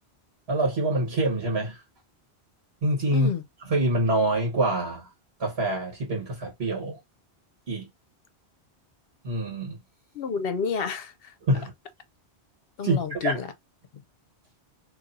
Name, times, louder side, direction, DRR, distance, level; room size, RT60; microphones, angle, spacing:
voice 1, 0.5-1.8 2.8-3.3 3.7-5.1 5.4-7.0 7.7-7.9 9.2-9.8 11.5-11.7 12.8-13.4, right 1 dB, 65° right, 1.6 m, -25 dB
voice 2, 3.1-3.4 10.1-11.3 12.8-13.5, left 6 dB, 65° left, 0.8 m, -30 dB
2.9 x 2.7 x 3.8 m
omnidirectional pair, 1.1 m